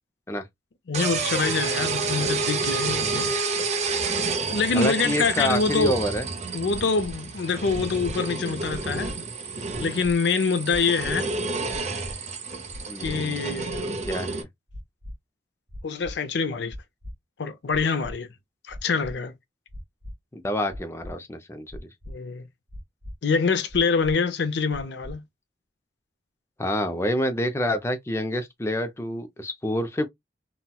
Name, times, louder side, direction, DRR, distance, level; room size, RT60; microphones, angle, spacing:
voice 1, 0.9-3.4 4.5-5.9 6.5-9.1 9.8-11.3 13.0-13.9 15.8-16.7 17.4-18.3 18.7-19.3 22.1-22.4 23.2-25.2, left 4 dB, 65° left, 0.5 m, -25 dB
sound 1, 0.9-14.4, right 4 dB, 40° right, 0.6 m, -29 dB
voice 2, 4.7-6.3 12.9-13.4 14.0-14.5 20.3-21.8 26.6-30.1, left 1 dB, 15° left, 0.4 m, -27 dB
sound 2, 6.7-7.1 7.7-8.1 8.7-9.1 9.7-10.2 10.7-11.1 11.7-12.2 12.7-13.1 13.7-14.1 14.7-15.1 15.7-16.2 16.7-17.1 17.7-18.1 18.7-19.1 19.7-20.1 20.7-21.1 21.7-22.1 22.7-23.1 23.7-24.1 24.7-25.1, left 1 dB, 55° right, 2.2 m, -38 dB
4.1 x 2.1 x 2.2 m
head